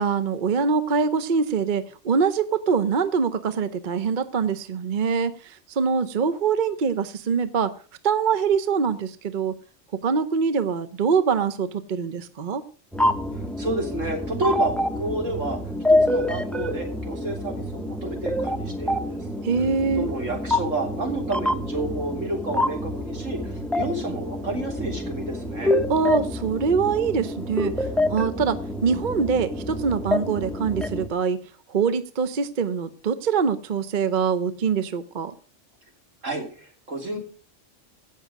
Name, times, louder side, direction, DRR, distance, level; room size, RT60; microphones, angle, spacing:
voice 1, 0.0-7.7 8.0-9.5 10.0-12.6 19.4-20.1 25.9-27.7 28.1-31.4 31.7-35.3, right 6 dB, 45° right, 12 dB, 0.8 m, -24 dB
sound 1, 12.9-31.1, left 1 dB, ahead, 0.6 m, -27 dB
voice 2, 13.3-15.6 15.9-19.2 20.0-23.4 23.7-25.8 36.2-37.2, right 2 dB, 75° right, 2 dB, 3.5 m, -30 dB
16.5 x 6.5 x 6.3 m, 0.41 s
omnidirectional pair, 1.3 m